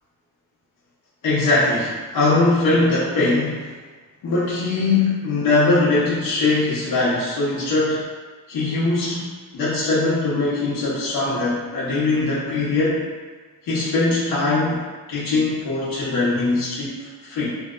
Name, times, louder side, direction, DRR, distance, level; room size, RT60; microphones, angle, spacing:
voice 1, 1.2-3.7 4.2-8.1 8.5-9.3 9.5-13.1 13.6-17.5, left 3 dB, 90° left, -9 dB, 0.9 m, -21 dB
3.2 x 2.8 x 2.4 m, 1.3 s
wide cardioid pair, 175°, 34 cm